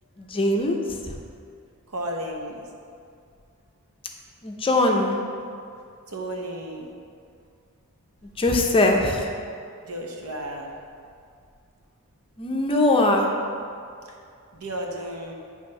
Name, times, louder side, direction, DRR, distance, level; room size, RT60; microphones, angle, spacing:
voice 1, 0.2-0.8 4.4-5.2 8.4-9.3 12.4-13.3, left 2 dB, 25° left, 2 dB, 0.6 m, -21 dB
voice 2, 1.9-2.6 6.1-6.9 9.8-10.7 14.5-15.3, right 1 dB, 70° right, 0 dB, 1.0 m, -33 dB
8.6 x 3.4 x 5.3 m, 2.3 s
head